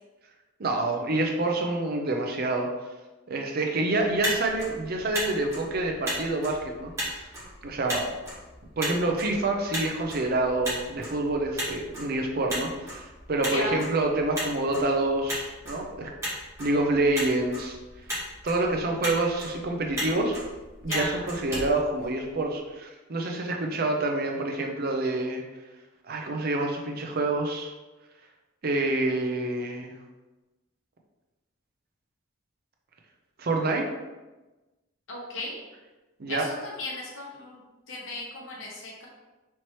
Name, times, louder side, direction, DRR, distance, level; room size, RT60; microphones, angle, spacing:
voice 1, 0.6-2.7 3.3-7.3 7.6-8.1 8.8-16.1 16.6-17.8 18.4-20.4 20.8-25.4 26.1-27.7 28.6-29.9 33.4-33.9 36.2-36.5, right 2 dB, 50° right, 2 dB, 0.6 m, -27 dB
Motor vehicle (road), 4.0-22.6, equal, 15° right, 1.3 m, -36 dB
voice 2, 13.5-13.8 20.9-21.2 35.1-35.6 36.3-37.6 37.9-39.1, left 2 dB, 70° left, -3 dB, 1.0 m, -35 dB
4.4 x 3.0 x 3.0 m, 1.1 s
head